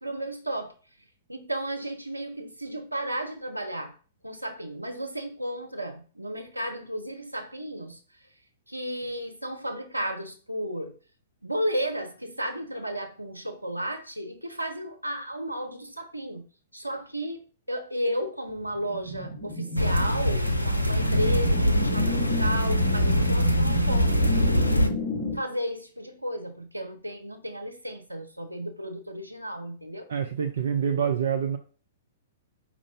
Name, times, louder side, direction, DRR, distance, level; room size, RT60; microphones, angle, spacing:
voice 1, 0.0-0.7 1.3-3.9 4.2-8.0 8.7-10.9 11.4-16.4 16.7-17.4 17.7-24.3 25.3-30.1, equal, 85° right, 5 dB, 0.8 m, -33 dB
sound 1, 18.6-25.4, equal, 20° left, 1.2 m, -31 dB
sound 2, 19.8-24.9, equal, 85° left, 0.5 m, -23 dB
voice 2, 30.1-31.6, right 7 dB, 60° right, 5 dB, 0.5 m, -26 dB
5.1 x 2.4 x 3.6 m, 0.38 s
figure-of-eight pair, 110°, 0 cm